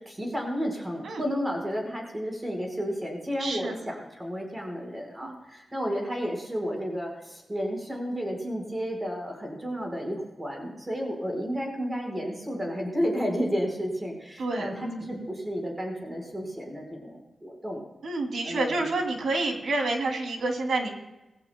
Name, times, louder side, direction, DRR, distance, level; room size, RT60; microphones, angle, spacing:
voice 1, 0.0-17.8 18.4-18.8, equal, 20° right, 1 dB, 5.0 m, -32 dB
voice 2, 3.4-3.8 5.2-5.3 14.4-15.3 18.0-20.9, right 2 dB, 85° right, 2 dB, 2.9 m, -29 dB
20.5 x 16.5 x 2.3 m, 1.0 s
wide cardioid pair, 105°, 0 cm